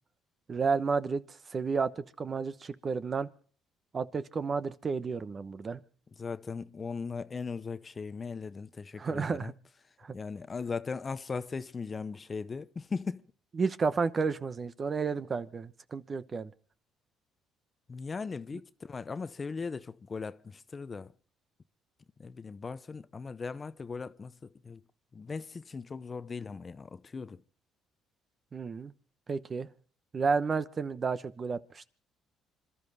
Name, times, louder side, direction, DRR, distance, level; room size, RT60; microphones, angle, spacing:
voice 1, 0.5-3.3 3.9-5.8 9.0-9.5 10.0-10.2 13.6-16.5 28.5-28.9 29.3-29.7 30.1-31.9, right 5 dB, 35° right, 1.0 m, -31 dB
voice 2, 6.2-9.5 10.1-13.2 17.9-21.1 22.2-24.8 25.1-27.4, left 5 dB, 30° left, 0.7 m, -38 dB
27.0 x 12.5 x 4.1 m
supercardioid pair, 85°, 0 cm